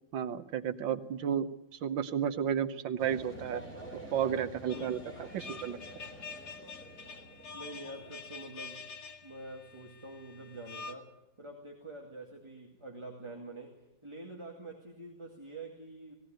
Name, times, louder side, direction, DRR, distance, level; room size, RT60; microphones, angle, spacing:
voice 1, 0.1-3.6 4.1-5.8, right 8 dB, 90° right, 10 dB, 1.7 m, -32 dB
sound 1, 3.0-8.3, right 1 dB, 5° left, 5.9 m, -49 dB
sound 2, 4.7-10.9, left 4 dB, 60° left, 1.8 m, -47 dB
voice 2, 4.7-5.1 7.5-8.9 9.2-11.1 11.4-13.7 14.0-16.1, right 2 dB, 15° right, 0 dB, 2.3 m, -46 dB
19.0 x 16.5 x 9.0 m, 0.84 s
omnidirectional pair, 2.0 m